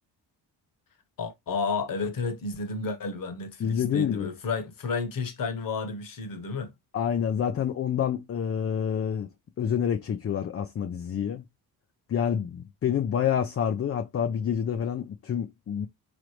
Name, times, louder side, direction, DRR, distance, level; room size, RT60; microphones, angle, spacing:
voice 1, 1.2-6.7, left 4 dB, 50° left, 1.3 m, -31 dB
voice 2, 3.6-4.3 6.9-9.3 9.6-11.4 12.1-15.9, left 8 dB, 35° left, 0.6 m, -28 dB
3.8 x 3.2 x 3.2 m
supercardioid pair, 65°, 43 cm